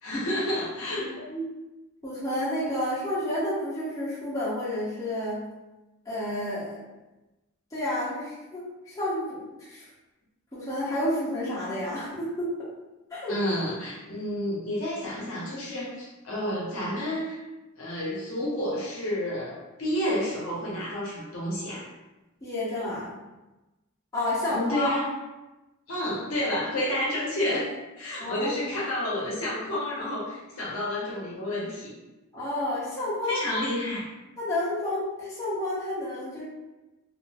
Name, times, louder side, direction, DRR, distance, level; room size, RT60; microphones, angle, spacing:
voice 1, 0.0-1.1 13.3-17.4 17.8-21.9 24.5-25.0 25.9-27.7 28.0-31.9 33.3-34.0, left 1 dB, 65° left, -5 dB, 0.7 m, -30 dB
voice 2, 1.0-1.5 2.0-5.4 6.0-6.9 7.7-9.9 10.5-12.7 13.1-13.4 22.4-23.1 24.1-25.0 28.2-28.5 32.3-33.6 34.4-36.4, left 1 dB, 15° left, -10 dB, 0.9 m, -30 dB
2.4 x 2.1 x 3.3 m, 1.1 s
head